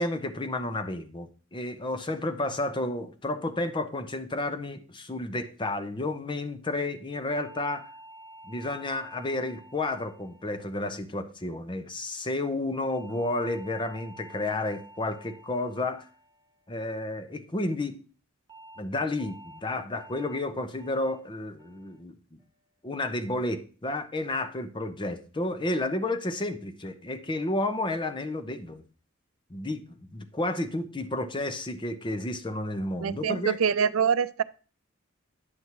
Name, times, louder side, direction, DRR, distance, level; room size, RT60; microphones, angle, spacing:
voice 1, 0.0-7.9 8.5-16.0 16.7-18.0 18.8-22.4 22.8-28.8 29.5-33.6, left 2 dB, 25° left, 0.8 m, -31 dB
sound 1, 7.3-11.8 12.9-17.4 18.5-18.8 19.2-19.6 20.0-20.4 20.8-21.2 21.6-22.0 22.4-22.8, right 1 dB, 20° right, 1.9 m, -51 dB
voice 2, 33.0-34.4, right 6 dB, 80° right, 0.4 m, -25 dB
9.5 x 7.0 x 3.0 m
head